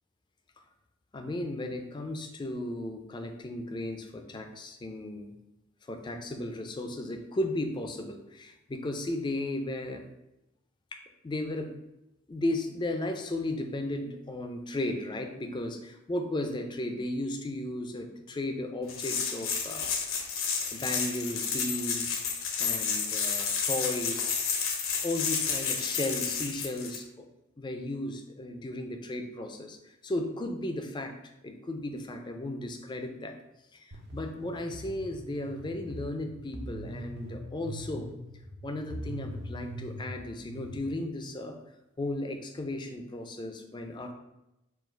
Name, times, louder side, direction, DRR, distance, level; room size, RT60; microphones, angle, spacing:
voice 1, 1.1-5.3 5.8-10.1 10.9-11.7 12.3-19.9 20.7-22.2 22.6-24.4 25.0-27.3 27.6-33.3 33.7-38.1 38.6-41.6 42.0-44.1, left 1 dB, 20° left, 5 dB, 0.4 m, -35 dB
sound 1, 18.9-27.0, left 6 dB, 75° left, 0.7 m, -31 dB
sound 2, 33.9-40.8, right 1 dB, 55° right, 0.6 m, -42 dB
4.6 x 2.4 x 4.3 m, 0.91 s
head